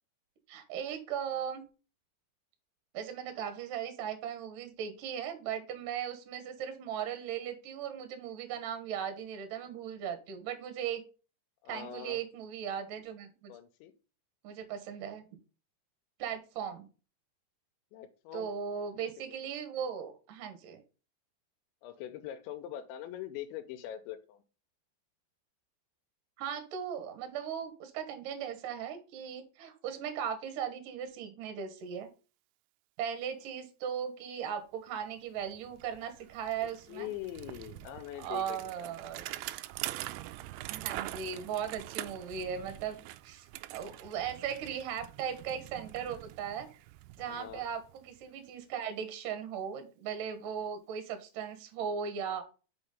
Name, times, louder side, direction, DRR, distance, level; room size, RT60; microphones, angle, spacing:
voice 1, 0.5-1.7 2.9-11.0 11.7-13.5 14.4-15.3 16.2-16.9 18.3-20.8 26.4-32.1 33.0-37.1 38.2-39.3 40.7-43.0 43.2-46.7 47.2-52.5, right 8 dB, 65° right, 7 dB, 2.4 m, -38 dB
voice 2, 11.6-12.2 13.5-13.9 17.9-18.5 21.8-24.4 36.6-39.2 47.2-47.7, left 11 dB, 90° left, 6 dB, 3.0 m, -43 dB
Bicycle, 35.0-35.1 35.4-48.3, right 16 dB, 85° right, 2.8 m, -44 dB
6.2 x 5.6 x 5.2 m, 0.34 s
omnidirectional pair, 5.1 m